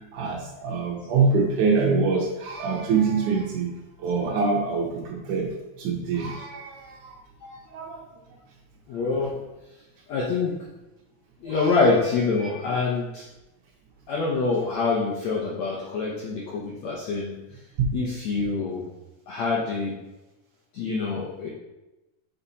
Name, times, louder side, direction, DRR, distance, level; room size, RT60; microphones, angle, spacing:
voice 1, 0.1-3.7 4.0-5.5 5.8-7.0 7.7-8.0 11.5-11.7, right 4 dB, 70° right, -1 dB, 2.2 m, -24 dB
voice 2, 8.9-9.3 10.1-10.5 11.4-13.2 14.1-17.3 17.9-18.9 19.3-19.9 20.7-21.5, left 4 dB, 70° left, -5 dB, 1.7 m, -25 dB
5.8 x 5.7 x 4.1 m, 1.0 s
omnidirectional pair, 4.2 m